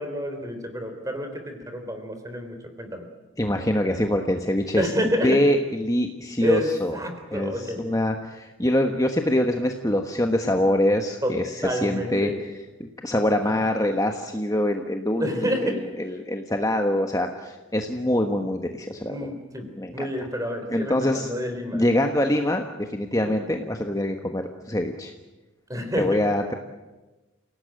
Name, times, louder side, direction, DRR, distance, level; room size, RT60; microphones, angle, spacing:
voice 1, 0.0-3.1 4.8-5.4 6.4-7.8 11.2-12.4 15.2-15.8 19.0-21.8 23.2-23.4 25.7-26.2, equal, 15° right, 6 dB, 3.9 m, -29 dB
voice 2, 3.4-4.8 5.2-6.9 7.3-12.3 12.8-19.2 19.8-20.1 20.7-21.3 21.7-25.1 26.0-26.5, left 1 dB, 15° left, 4 dB, 1.2 m, -24 dB
28.5 x 18.0 x 9.0 m, 1.2 s
head